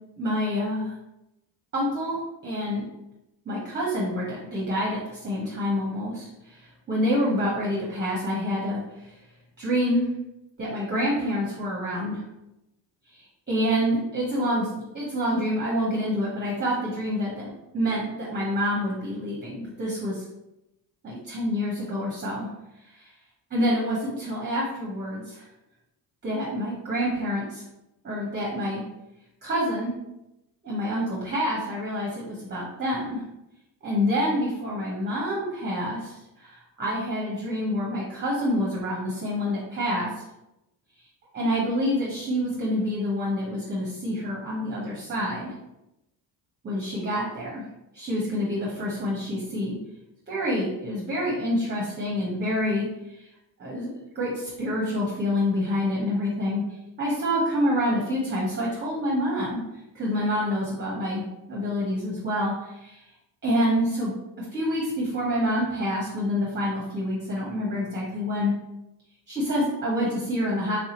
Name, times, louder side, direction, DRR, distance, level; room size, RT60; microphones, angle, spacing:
voice 1, 0.2-0.9 1.7-2.2 2.4-2.9 3.4-9.2 9.6-10.1 10.6-12.2 13.1-20.2 21.0-22.5 22.9-23.1 23.5-25.4 26.2-27.6 28.0-28.8 29.4-29.9 30.6-33.2 33.8-40.1 41.3-45.5 46.6-47.6 47.9-49.8 50.3-53.3 53.6-56.6 57.0-59.6 59.9-63.0 63.4-68.5 69.3-70.8, equal, 25° right, -5 dB, 1.0 m, -27 dB
3.3 x 2.7 x 3.0 m, 0.91 s
cardioid pair, 85°, 44 cm